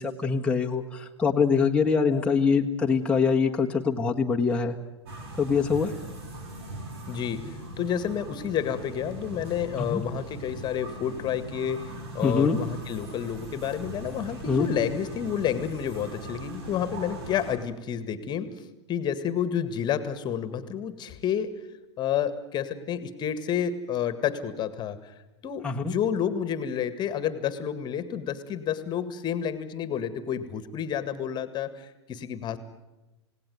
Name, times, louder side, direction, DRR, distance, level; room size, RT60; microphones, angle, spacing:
voice 1, 0.0-4.8 5.4-5.9 9.9-10.0 12.2-12.6 14.5-14.7 25.6-25.9, left 5 dB, 5° left, 0 dB, 1.7 m, -24 dB
sound 1, 5.1-17.6, right 1 dB, 65° right, 5.1 m, -40 dB
voice 2, 7.1-21.5 22.0-25.1 25.4-32.6, left 9 dB, 30° left, 13 dB, 1.9 m, -30 dB
28.5 x 18.0 x 9.5 m, 1.0 s
figure-of-eight pair, 95°, 15 cm